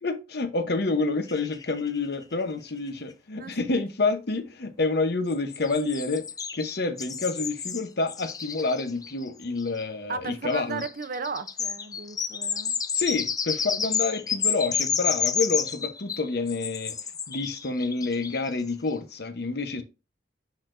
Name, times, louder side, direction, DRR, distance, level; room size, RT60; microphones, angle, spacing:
voice 1, 0.0-6.2 6.6-10.9 12.9-16.9 17.3-19.8, left 3 dB, 60° left, 0.9 m, -28 dB
sound 1, 1.3-2.3 2.7-2.8 3.0-3.1 5.3-9.8 10.5-18.7, left 6 dB, 20° left, 0.4 m, -30 dB
voice 2, 10.1-12.8, right 4 dB, 50° right, 0.7 m, -35 dB
10.5 x 4.2 x 2.6 m
head